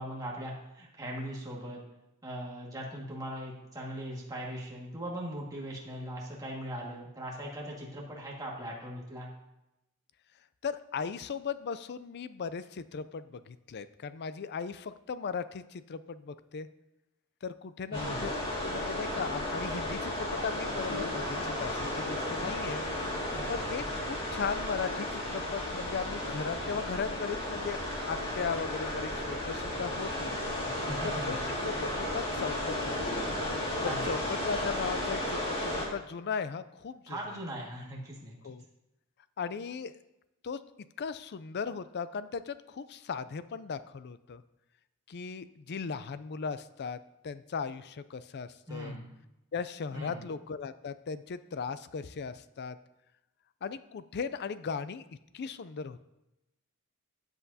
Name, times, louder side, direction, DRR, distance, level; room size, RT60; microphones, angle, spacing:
voice 1, 0.0-1.8 2.2-9.3 17.9-18.3 23.3-23.7 30.6-31.4 33.8-34.2 37.1-38.5 48.7-49.1 49.9-50.2, equal, 15° right, -3 dB, 1.8 m, -40 dB
voice 2, 10.6-16.7 17.4-18.3 18.6-22.9 23.5-30.4 31.0-31.4 31.6-33.2 33.8-37.2 38.4-38.7 39.4-40.0 40.4-40.6 41.0-44.4 45.1-47.0 47.2-48.9 49.5-52.8 53.6-55.0 55.3-56.0, left 5 dB, 50° left, 14 dB, 0.4 m, -37 dB
sound 1, 17.9-35.9, left 1 dB, 25° left, 2.1 m, -34 dB
13.0 x 8.1 x 2.8 m, 0.92 s
head